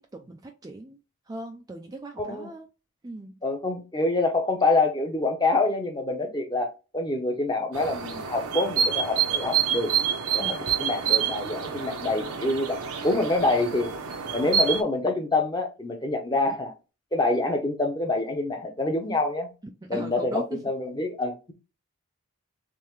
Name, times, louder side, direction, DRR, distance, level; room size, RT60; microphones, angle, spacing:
voice 1, 0.1-1.0 1.3-2.7 3.0-3.3 10.4-10.6 19.8-20.6, right 2 dB, 15° right, 0.3 m, -38 dB
voice 2, 2.2-2.5 3.4-9.9 10.3-13.9 14.3-16.7 17.1-19.5 19.9-21.5, left 2 dB, 20° left, 0.7 m, -26 dB
sound 1, 7.7-14.8, right 7 dB, 85° right, 0.8 m, -27 dB
3.6 x 3.2 x 3.1 m
head